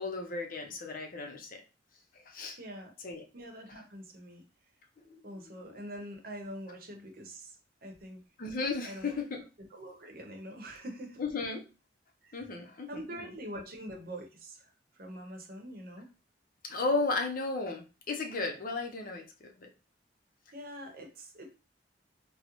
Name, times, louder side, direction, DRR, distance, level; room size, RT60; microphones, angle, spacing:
voice 1, 0.0-1.6 2.1-2.6 3.0-3.2 5.0-5.2 5.5-5.8 8.4-9.4 11.2-11.6 12.3-13.3 16.6-19.7, left 3 dB, 50° left, 3 dB, 0.6 m, -35 dB
voice 2, 2.6-2.9 3.3-4.4 5.2-7.5 7.8-8.2 8.8-9.2 9.7-11.2 12.2-12.4 12.9-14.6 15.0-16.1 20.5-21.5, equal, 55° right, 3 dB, 0.8 m, -44 dB
3.7 x 2.0 x 2.9 m, 0.33 s
head